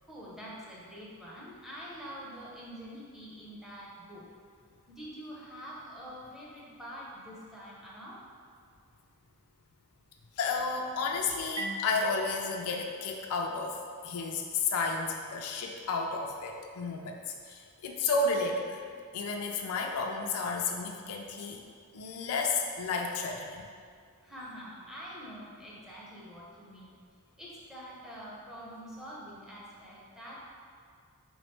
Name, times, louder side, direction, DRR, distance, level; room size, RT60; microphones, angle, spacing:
voice 1, 0.0-4.2 4.9-8.2 24.2-26.9 27.4-30.3, equal, ahead, -6 dB, 0.6 m, -45 dB
voice 2, 10.4-13.8 14.0-18.8 19.1-21.6 21.9-23.7, left 4 dB, 70° left, 2 dB, 0.4 m, -32 dB
Marimba xylophone, 11.6-14.2, right 1 dB, 85° right, 0.6 m, -43 dB
3.6 x 3.0 x 3.2 m, 2.1 s
head